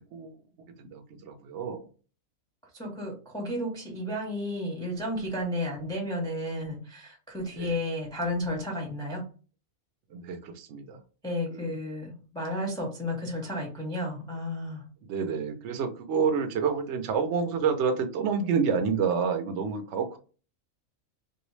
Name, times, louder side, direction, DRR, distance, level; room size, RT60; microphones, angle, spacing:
voice 1, 0.8-1.9 7.5-7.8 10.1-11.0 11.5-11.8 15.0-20.2, right 6 dB, 60° right, 7 dB, 0.9 m, -29 dB
voice 2, 2.7-9.3 11.2-14.8, left 1 dB, 5° left, -1 dB, 0.6 m, -32 dB
2.9 x 2.7 x 3.2 m, 0.36 s
omnidirectional pair, 1.4 m